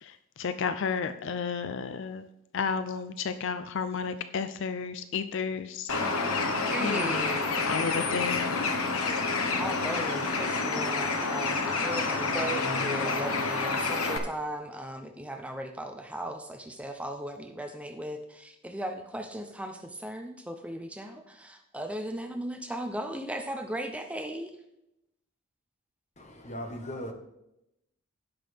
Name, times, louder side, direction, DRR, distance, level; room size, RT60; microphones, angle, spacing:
voice 1, 0.0-2.3 2.5-5.9 6.8-7.3 7.7-9.2, left 6 dB, 60° left, 0.4 m, -32 dB
Bird, 5.9-14.2, left 3 dB, 85° left, 1.2 m, -28 dB
voice 2, 6.7-7.7 9.5-24.5, right 1 dB, 5° right, 0.6 m, -37 dB
voice 3, 26.2-27.1, equal, 35° left, 1.3 m, -38 dB
17.0 x 5.9 x 3.5 m
head